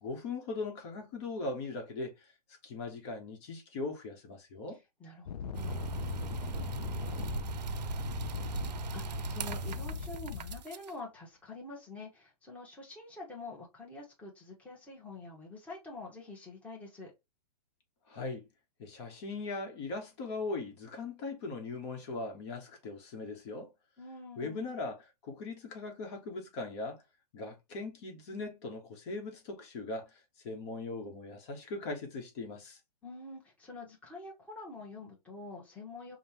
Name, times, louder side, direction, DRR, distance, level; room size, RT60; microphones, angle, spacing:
voice 1, 0.0-2.3 2.6-4.8 18.1-18.5 18.8-23.7 24.4-27.0 27.3-32.8, left 3 dB, 45° left, 1.4 m, -40 dB
voice 2, 5.0-5.9 7.7-7.8 8.9-17.1 24.0-24.7 33.0-36.2, left 3 dB, 5° left, 1.4 m, -46 dB
sound 1, 5.3-10.6, left 7 dB, 70° left, 0.6 m, -39 dB
sound 2, 5.5-10.9, right 7 dB, 90° right, 0.5 m, -39 dB
5.2 x 2.5 x 3.0 m
hypercardioid pair, 140°, 21 cm